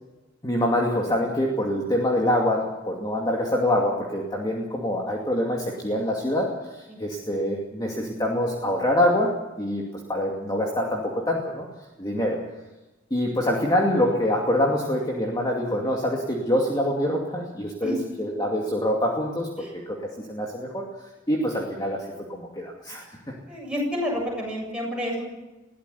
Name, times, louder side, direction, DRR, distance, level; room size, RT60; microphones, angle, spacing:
voice 1, 0.4-11.7 12.0-12.4 13.1-20.8 21.3-23.3, left 1 dB, 20° left, -1 dB, 2.5 m, -25 dB
voice 2, 23.5-25.2, equal, 5° right, -2 dB, 7.4 m, -29 dB
21.5 x 15.5 x 8.3 m, 1.1 s
head